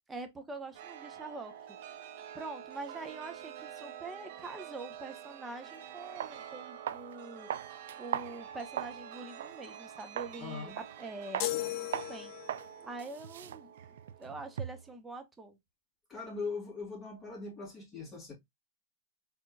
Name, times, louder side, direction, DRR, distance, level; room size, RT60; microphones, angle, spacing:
voice 1, 0.1-1.5 2.3-7.5 8.0-12.3 12.8-13.7 14.2-15.6, right 3 dB, 10° right, 1.0 m, -44 dB
Chime, 0.7-15.0, right 9 dB, 60° right, 0.9 m, -48 dB
sound 1, 5.6-5.7 6.2-6.4 6.9-7.1 7.5-9.0 9.4-9.5 10.2-10.4 10.8-11.0 11.3-11.5 11.9-12.1 12.5-12.7 13.0-14.9, right 10 dB, 80° right, 0.4 m, -38 dB
voice 2, 10.4-10.8 16.1-18.3, left 4 dB, 15° left, 2.7 m, -40 dB
sound 2, 11.4-12.8, left 15 dB, 45° left, 0.5 m, -36 dB
4.5 x 3.7 x 2.3 m
supercardioid pair, 140°, 0 cm